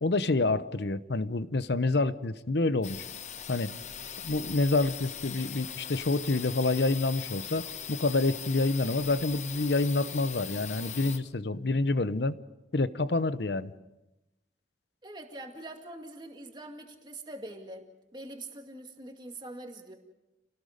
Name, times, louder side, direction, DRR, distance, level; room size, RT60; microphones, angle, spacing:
voice 1, 0.0-3.1 3.5-3.7 4.2-12.3 12.7-13.7, left 2 dB, 70° left, 14 dB, 0.8 m, -28 dB
sound 1, 2.8-11.2, left 8 dB, 40° left, 1.0 m, -40 dB
voice 2, 15.0-17.9 18.1-20.0, right 1 dB, 25° right, 4 dB, 2.2 m, -43 dB
29.0 x 18.0 x 5.2 m, 0.97 s
head